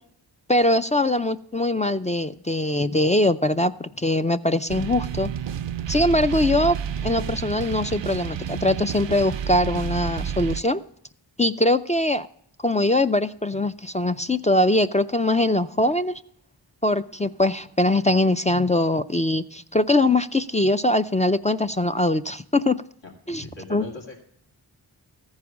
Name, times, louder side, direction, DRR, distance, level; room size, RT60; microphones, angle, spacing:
voice 1, 0.5-5.3 5.9-6.8 7.0-10.8 11.4-12.3 12.6-16.1 16.8-22.8 23.3-23.4 23.7-23.8, left 1 dB, 20° left, 11 dB, 0.3 m, -22 dB
sound 1, 4.7-10.6, right 8 dB, 80° right, 0.6 m, -30 dB
voice 2, 23.0-24.2, left 2 dB, 80° left, 0 dB, 2.3 m, -39 dB
14.0 x 4.9 x 7.0 m, 0.67 s
cardioid pair, 45°, 44 cm